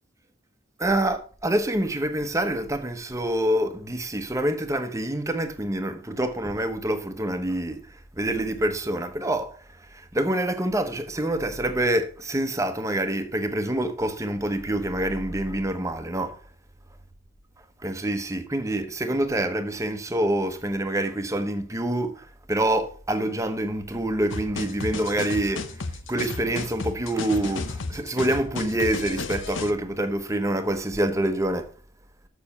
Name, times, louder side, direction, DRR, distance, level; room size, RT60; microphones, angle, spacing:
voice 1, 0.8-7.8 8.2-9.6 9.9-16.4 17.8-25.7 26.1-31.7, right 1 dB, 15° right, 1.0 m, -26 dB
sound 1, 24.3-29.7, left 3 dB, 85° left, 1.0 m, -33 dB
7.0 x 6.9 x 5.5 m
head